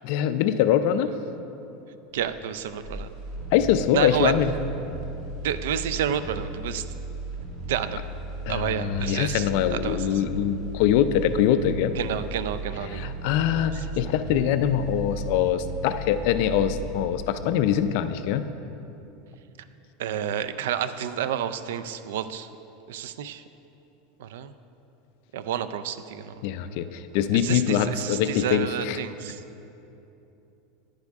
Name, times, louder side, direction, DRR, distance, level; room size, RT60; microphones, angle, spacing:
voice 1, 0.0-1.1 3.5-4.5 8.5-11.9 12.9-18.4 26.4-29.0, left 9 dB, 60° left, 11 dB, 0.4 m, -23 dB
sound 1, 2.1-18.2 18.6-18.7, right 2 dB, 55° right, 1.8 m, -36 dB
voice 2, 2.1-3.1 3.9-4.3 5.4-6.9 7.7-8.0 8.5-10.2 12.0-13.1 13.7-13.8 20.0-22.5 22.9-23.4 24.2-24.5 25.3-26.4 27.3-29.4, right 9 dB, 85° right, 12 dB, 0.4 m, -30 dB
10.5 x 9.6 x 3.6 m, 2.9 s
supercardioid pair, 160°, 0 cm